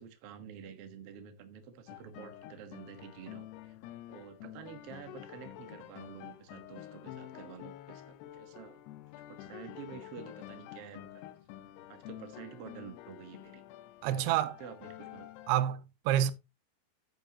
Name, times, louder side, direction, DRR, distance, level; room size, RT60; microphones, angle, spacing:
voice 1, 0.0-3.7 4.1-8.8 9.2-11.2 11.9-13.6 14.0-15.3 15.7-15.8, right 7 dB, 55° right, 1.7 m, -49 dB
sound 1, 1.9-15.6, left 13 dB, 90° left, 3.0 m, -49 dB
voice 2, 14.0-14.5 15.5-16.3, right 11 dB, 90° right, 2.7 m, -28 dB
10.0 x 9.3 x 2.9 m
omnidirectional pair, 4.7 m